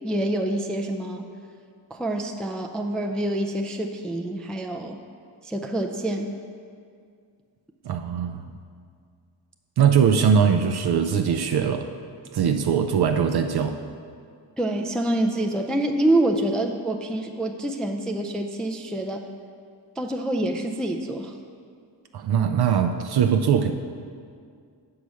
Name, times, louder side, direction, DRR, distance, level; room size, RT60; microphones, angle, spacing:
voice 1, 0.0-1.2 1.9-5.0 5.4-6.4 14.6-19.3 20.0-21.4, right 1 dB, ahead, 3 dB, 0.3 m, -26 dB
voice 2, 7.8-8.5 9.8-11.9 12.3-13.8 22.1-23.7, right 7 dB, 60° right, 6 dB, 0.5 m, -21 dB
6.8 x 4.8 x 6.3 m, 2.2 s
cardioid pair, 95°, 46 cm